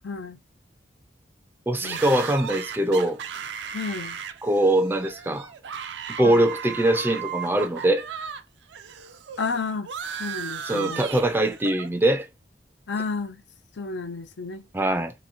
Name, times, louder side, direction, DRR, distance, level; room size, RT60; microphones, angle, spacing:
voice 1, 0.0-0.4 1.8-2.0 3.7-4.2 6.2-6.5 9.4-9.9 10.2-11.0 12.9-13.4 13.8-14.6, left 4 dB, 85° left, 0.6 m, -31 dB
voice 2, 1.7-3.2 4.4-5.5 6.2-8.1 10.7-12.3 14.7-15.1, right 1 dB, 10° right, 0.4 m, -22 dB
sound 1, 1.8-8.4 8.7-11.9, right 7 dB, 75° right, 0.4 m, -36 dB
2.9 x 2.7 x 2.6 m
head